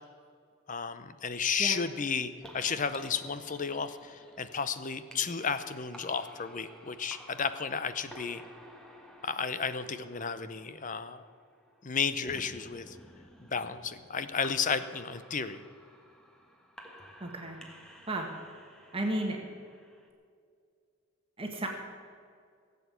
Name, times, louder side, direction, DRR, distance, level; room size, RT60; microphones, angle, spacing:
voice 1, 0.7-8.4 9.2-11.2 11.8-13.0 13.5-15.6, left 6 dB, 35° left, 12 dB, 0.7 m, -33 dB
sound 1, 2.4-20.1, equal, 5° left, 1.4 m, -53 dB
voice 2, 17.2-17.6 18.1-18.3 18.9-19.4 21.4-21.7, right 1 dB, 25° right, 1 dB, 1.7 m, -33 dB
17.0 x 8.2 x 8.2 m, 2.2 s
head